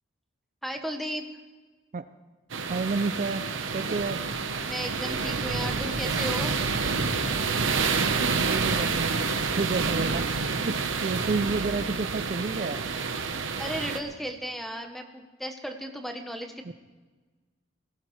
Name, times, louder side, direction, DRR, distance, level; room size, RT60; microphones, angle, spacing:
voice 1, 0.6-1.2 4.6-6.6 13.6-16.7, equal, ahead, 5 dB, 1.0 m, -35 dB
sound 1, 2.5-14.0, right 4 dB, 80° right, 1.0 m, -28 dB
voice 2, 2.7-3.5 3.7-4.2 8.0-10.3 10.6-12.8 16.6-16.7, right 3 dB, 40° right, 10 dB, 0.4 m, -30 dB
20.0 x 17.5 x 3.3 m, 1.3 s
head